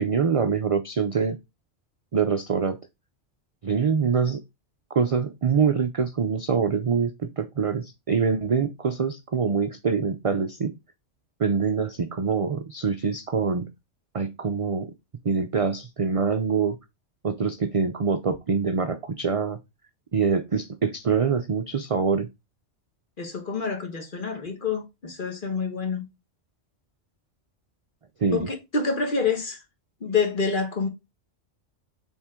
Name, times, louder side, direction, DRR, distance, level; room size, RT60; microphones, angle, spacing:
voice 1, 0.0-1.4 2.1-2.8 3.6-4.4 4.9-10.7 11.4-13.7 14.1-14.9 15.2-16.8 17.2-19.6 20.1-22.3 28.2-28.5, right 5 dB, 60° right, 0.3 m, -24 dB
voice 2, 23.2-26.0 28.3-29.6 30.0-30.9, left 5 dB, 45° left, 1.4 m, -27 dB
7.1 x 3.7 x 3.6 m
omnidirectional pair, 1.3 m